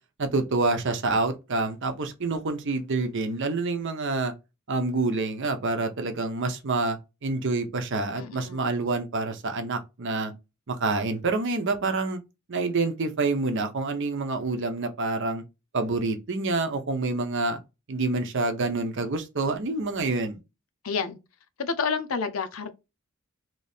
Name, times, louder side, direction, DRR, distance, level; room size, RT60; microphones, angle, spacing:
voice 1, 0.2-4.3 4.7-7.0 7.2-10.3 10.7-12.2 12.5-15.4 15.7-17.6 17.9-20.4, right 3 dB, 60° right, 0.7 m, -27 dB
voice 2, 8.2-8.7 20.8-21.2 21.6-22.7, left 5 dB, 75° left, 0.6 m, -29 dB
3.1 x 2.7 x 3.4 m
head